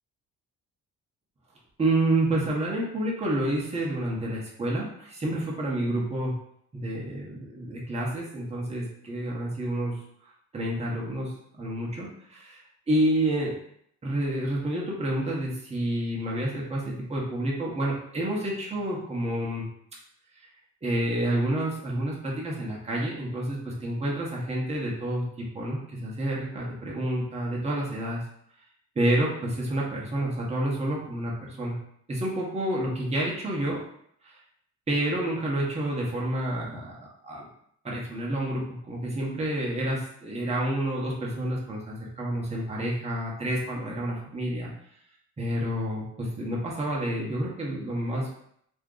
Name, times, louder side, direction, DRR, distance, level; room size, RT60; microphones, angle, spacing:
voice 1, 1.8-6.3 6.7-10.0 10.5-12.6 12.9-13.5 14.0-19.6 20.8-28.2 29.0-31.8 32.1-33.8 34.2-34.4 34.9-37.5 37.8-44.7 45.4-48.3, right 1 dB, 20° right, -4 dB, 0.9 m, -29 dB
2.6 x 2.2 x 3.7 m, 0.69 s
cardioid pair, 90°, 30 cm